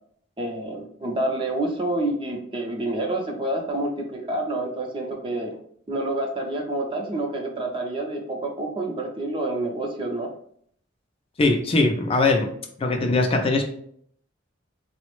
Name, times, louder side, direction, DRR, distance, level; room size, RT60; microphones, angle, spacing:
voice 1, 0.4-5.6 5.9-10.3, right 1 dB, 25° right, 1 dB, 0.6 m, -28 dB
voice 2, 11.4-12.5 12.8-13.6, left 2 dB, 30° left, 3 dB, 0.4 m, -21 dB
4.0 x 2.0 x 3.0 m, 0.64 s
head